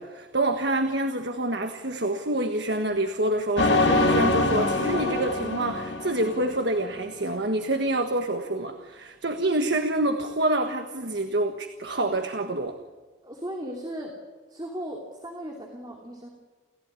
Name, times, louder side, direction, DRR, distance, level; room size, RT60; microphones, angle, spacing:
voice 1, 0.0-12.8, right 1 dB, 60° right, 6 dB, 1.5 m, -27 dB
sound 1, 3.6-7.0, left 2 dB, 60° left, 2.2 m, -24 dB
voice 2, 13.2-14.2 14.5-16.3, equal, 20° right, 0 dB, 2.9 m, -36 dB
29.5 x 15.5 x 9.7 m, 1.4 s
head